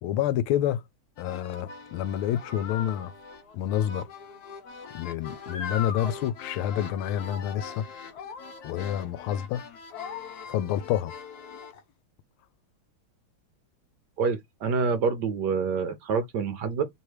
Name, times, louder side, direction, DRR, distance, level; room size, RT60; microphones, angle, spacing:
voice 1, 0.0-0.8 1.2-3.1 3.5-4.1 4.9-7.8 8.6-9.6 10.5-11.1, left 11 dB, 85° left, 1.5 m, -28 dB
sound 1, 1.2-11.8, left 6 dB, 60° left, 1.2 m, -41 dB
voice 2, 14.2-16.9, right 5 dB, 70° right, 1.1 m, -27 dB
3.4 x 3.1 x 4.6 m
omnidirectional pair, 2.3 m